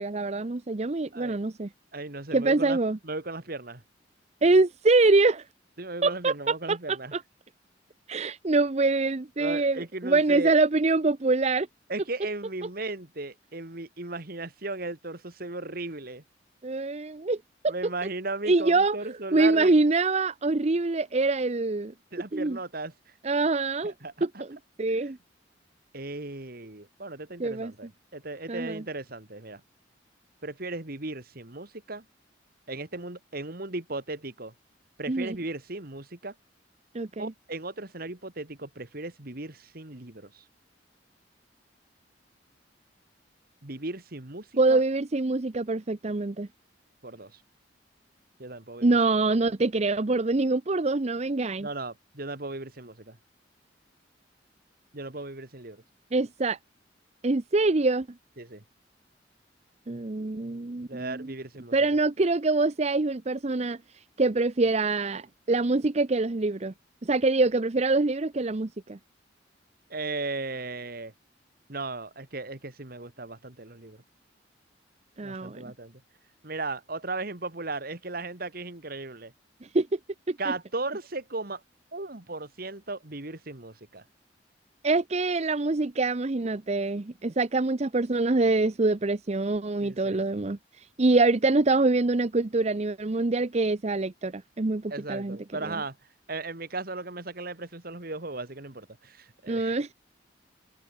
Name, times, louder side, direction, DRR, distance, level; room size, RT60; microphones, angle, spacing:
voice 1, 0.0-1.7 2.3-3.0 4.4-5.4 6.0-7.2 8.1-11.7 16.6-17.4 17.6-17.7 18.5-19.0 19.3-21.9 22.3-22.6 23.2-23.9 24.8-25.2 27.4-27.7 28.5-28.8 35.1-35.4 36.9-37.3 44.6-46.5 48.8-51.7 56.1-56.6 57.2-58.1 59.9-61.3 61.7-66.7 67.0-69.0 75.2-75.6 79.6-80.0 80.3-80.4 84.8-95.4 95.6-95.7 99.5-99.9, right 3 dB, 35° right, 0.7 m, -25 dB
voice 2, 1.9-2.8 3.0-3.8 5.8-7.1 9.4-10.6 11.9-16.2 17.7-19.7 22.1-23.1 23.8-24.4 24.9-25.1 25.9-29.6 30.4-32.0 32.7-34.5 35.0-36.3 37.2-40.4 43.6-44.8 47.0-47.4 48.4-49.0 51.6-53.2 54.9-55.8 58.4-58.6 60.9-61.8 69.9-71.1 71.7-74.0 75.2-76.0 76.4-79.3 80.4-81.6 81.9-84.0 89.8-90.2 94.9-96.0 96.3-99.8, right 2 dB, 50° right, 2.2 m, -36 dB
head